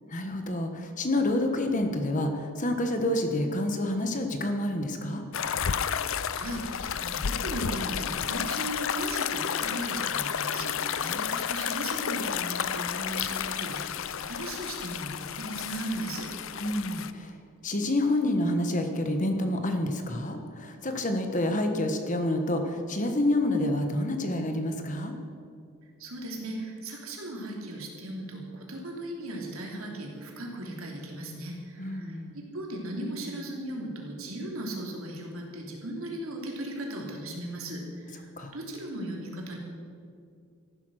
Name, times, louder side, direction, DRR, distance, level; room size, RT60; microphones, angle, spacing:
voice 1, 0.1-5.2 11.0-11.5 16.6-17.3 17.6-25.1 31.8-32.4 38.4-38.5, left 1 dB, 35° left, 5 dB, 1.2 m, -28 dB
sound 1, 5.3-17.1, left 8 dB, 65° left, 0.5 m, -31 dB
voice 2, 5.9-11.1 11.5-16.3 26.0-39.6, right 1 dB, 70° right, 0 dB, 3.0 m, -37 dB
14.5 x 12.0 x 6.4 m, 2.3 s
head